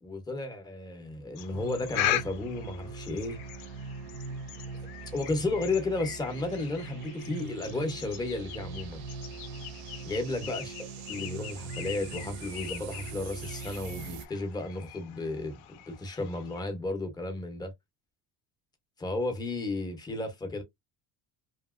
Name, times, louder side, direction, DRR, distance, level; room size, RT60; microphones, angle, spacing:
voice 1, 0.0-3.4 5.1-9.0 10.1-10.7 11.1-17.7 19.0-20.6, left 2 dB, 10° left, 0.5 m, -33 dB
sound 1, 1.3-16.6, left 13 dB, 65° left, 0.5 m, -40 dB
sound 2, 1.5-14.3, right 4 dB, 70° right, 0.6 m, -42 dB
2.8 x 2.7 x 2.3 m
cardioid pair, 175°, 40 cm